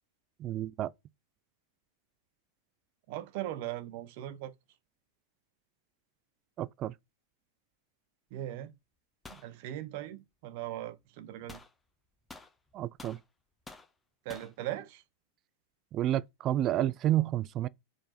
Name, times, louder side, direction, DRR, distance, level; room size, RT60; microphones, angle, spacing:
voice 1, 0.4-0.9 6.6-6.9 12.7-13.2 15.9-17.7, right 13 dB, 35° right, 0.3 m, -30 dB
voice 2, 3.1-4.5 8.3-8.7 9.3-11.6 14.2-15.0, right 13 dB, 50° right, 0.8 m, -39 dB
sound 1, 9.2-9.5 11.5-11.7 12.3-13.2 13.7-13.9 14.3-14.5, left 3 dB, 10° left, 1.4 m, -49 dB
4.9 x 4.5 x 5.8 m
figure-of-eight pair, 95°, 0 cm